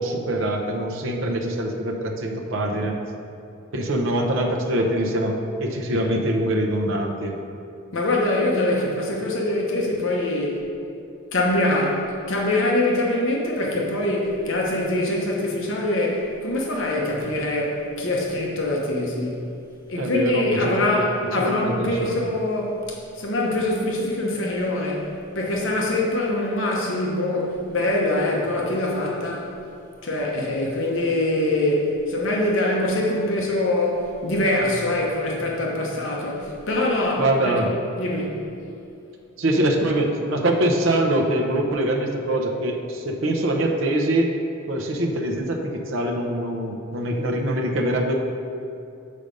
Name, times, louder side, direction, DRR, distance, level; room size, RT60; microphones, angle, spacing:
voice 1, 0.0-2.9 3.7-7.3 20.0-21.0 21.4-22.2 37.2-37.7 39.4-44.3 44.7-48.1, right 1 dB, 65° right, 1 dB, 0.7 m, -24 dB
voice 2, 7.9-10.7 11.3-19.5 19.9-25.1 25.3-29.5 30.0-37.6 38.0-38.4, left 1 dB, 60° left, -2 dB, 1.0 m, -24 dB
6.5 x 5.0 x 5.2 m, 2.6 s
head